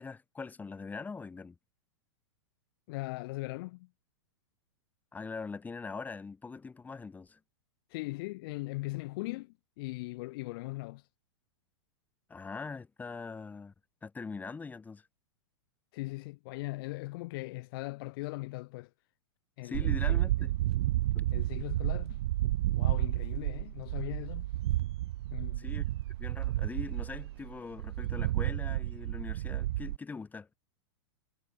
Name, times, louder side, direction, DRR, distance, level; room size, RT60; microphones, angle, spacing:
voice 1, 0.0-1.6 5.1-7.4 12.3-13.7 14.0-15.1 19.6-20.5 21.1-21.3 25.6-25.8 26.2-30.5, left 4 dB, 10° left, 5.5 m, -42 dB
voice 2, 2.9-3.9 7.9-11.0 15.9-18.9 19.6-20.3 21.3-22.2 22.8-24.5 25.3-25.7, left 22 dB, 50° left, 1.9 m, -39 dB
sound 1, 19.7-30.0, right 15 dB, 65° right, 1.0 m, -31 dB
hypercardioid pair, 140°, 15 cm